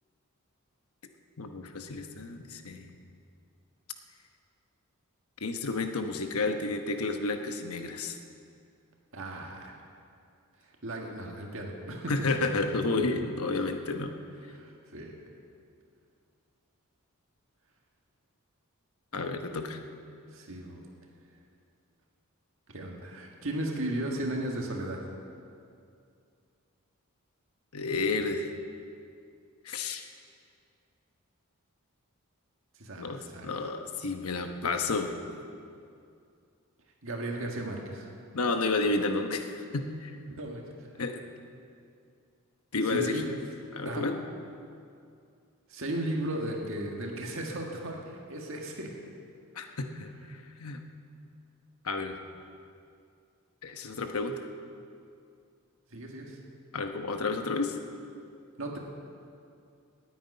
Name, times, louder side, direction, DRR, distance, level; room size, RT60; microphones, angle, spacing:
voice 1, 1.4-2.9 5.4-8.2 12.1-14.1 19.1-19.8 27.7-28.5 29.6-30.0 33.0-35.2 38.3-40.2 41.0-41.2 42.7-43.2 43.7-44.2 49.5-50.8 51.8-52.2 53.6-54.4 56.7-57.8, left 3 dB, 80° left, 6 dB, 1.0 m, -31 dB
voice 2, 9.1-9.7 10.8-12.1 14.5-15.1 20.3-20.8 22.7-25.0 32.8-33.5 37.0-38.1 40.4-40.9 42.9-43.2 43.8-44.1 45.7-48.9 55.9-56.4 58.6-58.8, right 1 dB, 65° right, 0 dB, 1.7 m, -35 dB
9.6 x 9.3 x 9.5 m, 2.4 s
head